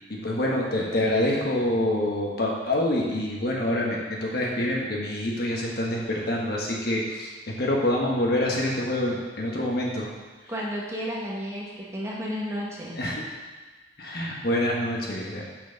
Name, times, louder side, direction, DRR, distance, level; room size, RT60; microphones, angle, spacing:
voice 1, 0.1-7.3 7.6-10.1 13.0-13.2 14.0-15.4, left 1 dB, 55° left, -2 dB, 1.4 m, -26 dB
voice 2, 10.5-13.0, equal, 15° right, -5 dB, 1.4 m, -32 dB
6.4 x 6.2 x 5.3 m, 1.3 s
head